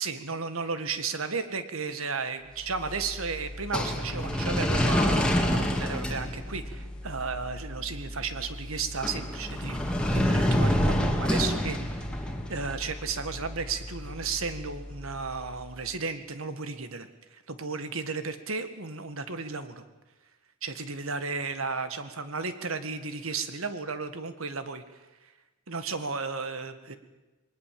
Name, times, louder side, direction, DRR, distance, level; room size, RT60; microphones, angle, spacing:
voice 1, 0.0-19.8 20.6-24.8 25.2-25.3 25.7-27.0, right 4 dB, 80° right, 10 dB, 1.8 m, -34 dB
sound 1, 2.6-15.7, equal, 5° left, 2.1 m, -29 dB
21.5 x 19.0 x 7.7 m, 1.1 s
head